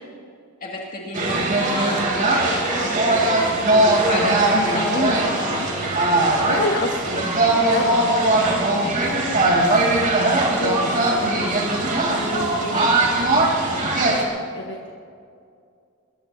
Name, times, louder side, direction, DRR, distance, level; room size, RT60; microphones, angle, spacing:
voice 1, 0.6-2.0 2.3-3.5 3.8-5.7, left 1 dB, 40° left, -3 dB, 2.2 m, -29 dB
sound 1, 1.1-14.2, right 2 dB, 40° right, 3.2 m, -20 dB
voice 2, 6.5-8.0 8.4-8.7 9.1-9.8 10.3-11.6 12.0-12.8 13.6-14.9, left 2 dB, 60° left, 1 dB, 1.3 m, -30 dB
23.0 x 21.5 x 2.8 m, 2.4 s
head